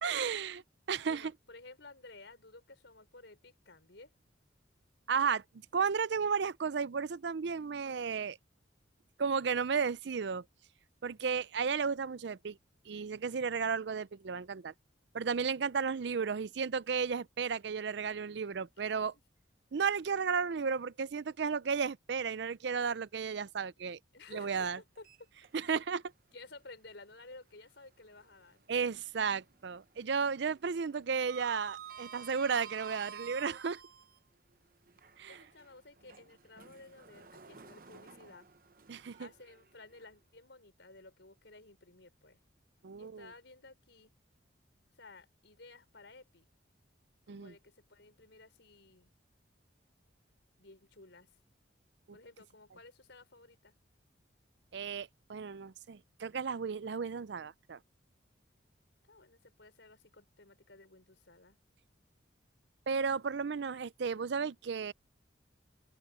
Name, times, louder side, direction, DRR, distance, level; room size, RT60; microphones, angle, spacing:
voice 1, 0.0-0.6 0.9-1.3 5.1-5.4 5.7-8.4 9.2-10.4 11.0-12.6 12.9-14.7 15.1-19.1 19.7-24.0 24.3-24.8 25.5-26.0 28.7-33.8 35.2-35.4 38.9-39.3 42.8-43.2 47.3-47.5 52.1-52.2 54.7-57.8 62.9-64.9, right 6 dB, 65° right, 0.5 m, -33 dB
voice 2, 1.1-4.1 18.9-19.2 24.1-25.3 25.6-25.8 26.3-28.6 35.0-38.5 39.2-42.4 43.0-44.1 44.9-46.5 47.3-49.1 50.6-51.4 52.1-53.8 59.0-61.6, left 3 dB, 70° left, 4.3 m, -55 dB
Sliding door, 25.0-25.9 26.3-26.4 28.1-29.2 29.5-29.8 30.1-34.2 34.9-40.1, right 8 dB, 50° right, 0.9 m, -51 dB
open air
head